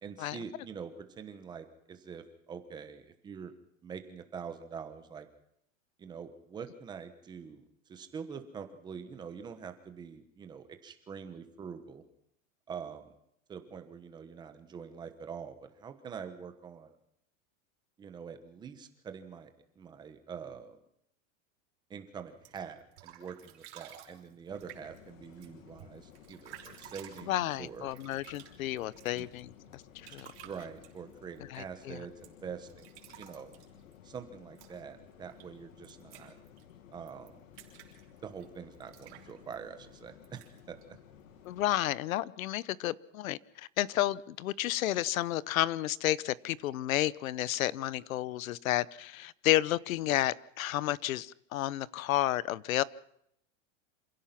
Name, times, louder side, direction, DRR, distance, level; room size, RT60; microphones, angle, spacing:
voice 1, 0.0-3.5 3.8-5.3 6.0-12.0 12.7-13.1 13.5-16.9 18.0-19.5 19.8-20.8 21.9-27.9 29.1-29.3 30.1-33.6 34.0-36.3 36.9-37.4 38.2-40.4 40.7-40.8, right 6 dB, 10° right, 1.1 m, -45 dB
sound 1, 22.3-41.9, right 11 dB, 50° right, 5.6 m, -56 dB
sound 2, 24.5-41.8, left 9 dB, 70° left, 2.1 m, -56 dB
voice 2, 27.3-30.3 31.5-32.0 41.4-52.8, left 14 dB, 85° left, 0.9 m, -31 dB
27.0 x 16.0 x 5.9 m
supercardioid pair, 180°, 40 cm